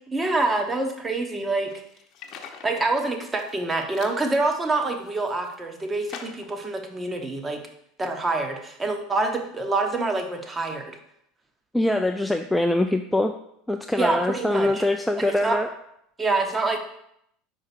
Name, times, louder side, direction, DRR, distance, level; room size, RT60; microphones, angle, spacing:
voice 1, 0.1-1.7 2.6-7.6 8.0-11.0 14.0-14.8 15.2-15.6 16.2-16.8, right 3 dB, 20° right, 4 dB, 1.1 m, -26 dB
sound 1, 1.7-2.8 3.2-3.6 3.9-4.2 4.8-5.5 6.1-6.6, left 6 dB, 50° left, 0.8 m, -43 dB
voice 2, 11.7-13.4 13.7-15.7, left 1 dB, 5° left, 4 dB, 0.4 m, -23 dB
4.9 x 4.8 x 4.5 m, 0.74 s
hypercardioid pair, 85°, 0 cm